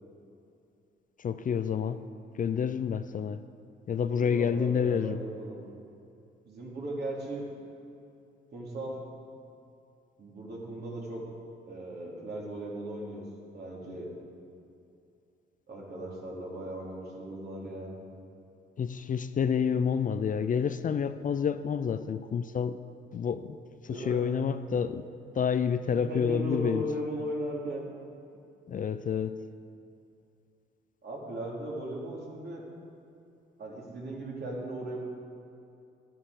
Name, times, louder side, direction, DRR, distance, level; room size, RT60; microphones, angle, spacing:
voice 1, 1.2-2.0 2.4-3.4 3.9-5.2 18.8-22.8 23.1-23.6 23.8-25.1 25.4-26.8 28.7-29.4, left 7 dB, 40° left, 11 dB, 0.5 m, -29 dB
voice 2, 4.2-5.6 6.5-7.5 8.5-9.0 10.2-11.2 11.7-13.2 13.5-14.1 15.7-18.0 23.9-24.3 25.9-27.8 31.0-32.6 33.6-35.0, right 1 dB, 55° right, -3 dB, 3.4 m, -37 dB
12.5 x 9.2 x 6.5 m, 2.6 s
cardioid pair, 90°, 20 cm